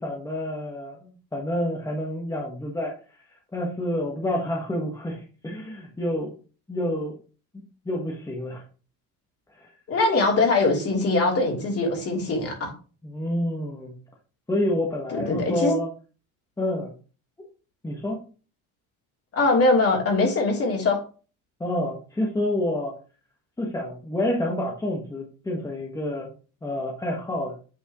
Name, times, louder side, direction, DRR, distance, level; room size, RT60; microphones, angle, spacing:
voice 1, 0.0-2.9 3.5-6.3 6.7-7.2 7.8-8.6 9.6-9.7 13.0-14.0 14.5-15.9 16.6-16.9 17.8-18.2 21.6-22.9 23.6-26.3 26.6-27.5, left 1 dB, 10° left, -1 dB, 1.5 m, -28 dB
voice 2, 9.9-12.7 15.1-15.7 19.3-21.0, left 3 dB, 45° left, 0 dB, 3.2 m, -22 dB
8.6 x 4.6 x 3.0 m, 0.36 s
cardioid pair, 120°, 34 cm